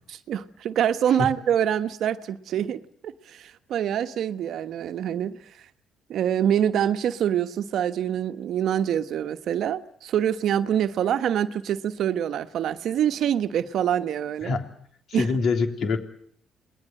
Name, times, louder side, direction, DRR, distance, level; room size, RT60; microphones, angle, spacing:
voice 1, 0.1-5.4 6.1-14.5 15.1-15.3, right 9 dB, 65° right, 1.2 m, -25 dB
voice 2, 15.1-16.0, left 4 dB, 60° left, 3.4 m, -24 dB
28.0 x 20.0 x 7.7 m
supercardioid pair, 60°, 0 cm